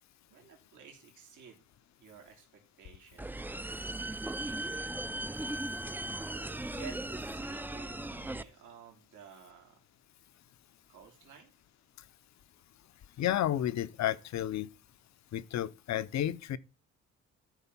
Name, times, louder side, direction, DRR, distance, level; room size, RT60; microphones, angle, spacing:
voice 1, 0.3-1.6 2.0-3.3 4.2-5.2 6.6-9.8 10.9-11.5, right 7 dB, 80° right, 3.1 m, -53 dB
sound 1, 3.2-8.4, right 1 dB, 5° right, 0.5 m, -38 dB
voice 2, 13.2-14.7 15.3-16.6, left 12 dB, 65° left, 0.8 m, -31 dB
13.0 x 4.9 x 5.5 m
cardioid pair, 90°, 30 cm